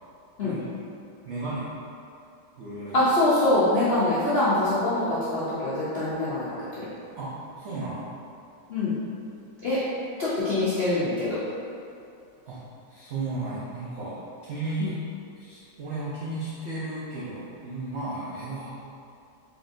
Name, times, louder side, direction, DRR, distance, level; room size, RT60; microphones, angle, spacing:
voice 1, 1.2-1.8 2.6-3.0 7.1-8.1 12.5-12.6 12.9-15.0 15.4-18.7, right 2 dB, 80° right, -8 dB, 0.6 m, -34 dB
voice 2, 2.9-6.5 6.8-6.9 8.7-8.9 9.6-9.8 10.2-11.4 14.8-14.9, left 1 dB, 70° left, -11 dB, 0.5 m, -24 dB
3.7 x 3.4 x 2.5 m, 2.5 s
omnidirectional pair, 1.9 m